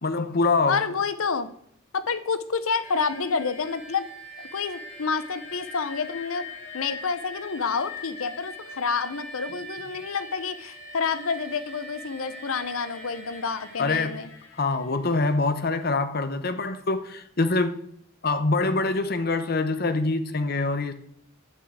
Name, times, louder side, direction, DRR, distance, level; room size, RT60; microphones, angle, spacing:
voice 1, 0.0-0.8 13.8-14.2 14.6-17.8 18.2-20.9, left 3 dB, 45° left, 0.9 m, -25 dB
voice 2, 0.7-1.5 1.9-4.1 4.5-6.4 6.7-14.3, left 5 dB, 85° left, 0.8 m, -28 dB
sound 1, 2.8-15.2, left 1 dB, 65° left, 3.5 m, -42 dB
9.3 x 6.3 x 7.6 m
head